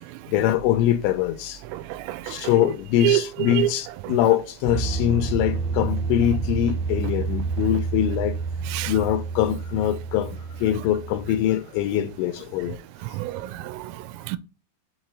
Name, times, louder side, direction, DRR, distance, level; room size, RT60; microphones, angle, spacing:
voice 1, 0.3-1.6 2.3-8.4 8.9-12.8, left 12 dB, 85° left, 2.9 m, -23 dB
sound 1, 0.6-0.8 4.7-11.4, right 4 dB, 55° right, 0.6 m, -29 dB
voice 2, 1.9-2.3 3.0-3.2 3.6-3.7 8.7-8.9 13.1-13.8 14.3-14.4, right 14 dB, 85° right, 3.2 m, -25 dB
7.4 x 3.0 x 6.1 m
omnidirectional pair, 5.8 m